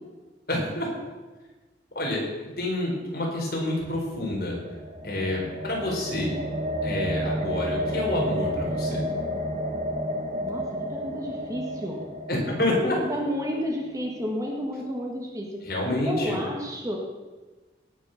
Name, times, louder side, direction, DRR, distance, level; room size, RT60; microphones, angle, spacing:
voice 1, 0.5-0.9 1.9-2.2 2.6-4.6 5.0-6.4 6.8-9.0 12.3-13.0 15.6-16.4, left 1 dB, 55° left, -2 dB, 4.4 m, -28 dB
sound 1, 3.9-14.1, equal, 40° right, 1.3 m, -31 dB
voice 2, 10.9-12.0 12.7-15.6 16.0-17.0, equal, 20° right, -1 dB, 1.8 m, -31 dB
18.0 x 6.7 x 6.6 m, 1.3 s
head